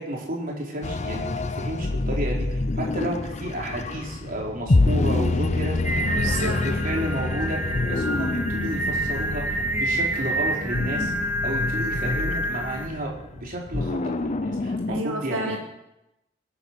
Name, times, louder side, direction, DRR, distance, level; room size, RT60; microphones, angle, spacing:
voice 1, 0.0-6.2 6.4-15.6, right 1 dB, 45° right, -2 dB, 3.9 m, -32 dB
sound 1, 0.8-15.0, left 2 dB, 35° left, 0.6 m, -27 dB
Singing, 5.8-12.9, right 1 dB, 10° right, 1.1 m, -28 dB
voice 2, 6.0-6.6 14.9-15.6, right 2 dB, 85° right, 1 dB, 1.9 m, -30 dB
23.0 x 9.7 x 6.0 m, 0.91 s
head